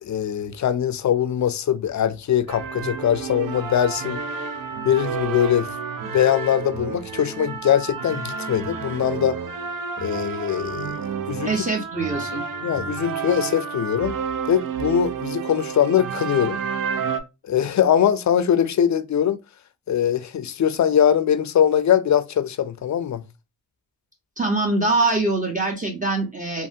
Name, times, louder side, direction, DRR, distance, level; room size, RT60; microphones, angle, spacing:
voice 1, 0.0-4.2 4.9-5.7 6.1-9.4 10.0-11.6 12.6-14.2 14.5-16.6 17.5-19.4 19.9-23.2, left 9 dB, 45° left, 0.5 m, -22 dB
sound 1, 2.5-17.2, right 6 dB, 55° right, 0.6 m, -30 dB
voice 2, 11.4-12.4 24.4-26.7, right 3 dB, 20° right, 1.0 m, -23 dB
3.2 x 2.2 x 2.6 m
cardioid pair, 50°, 39 cm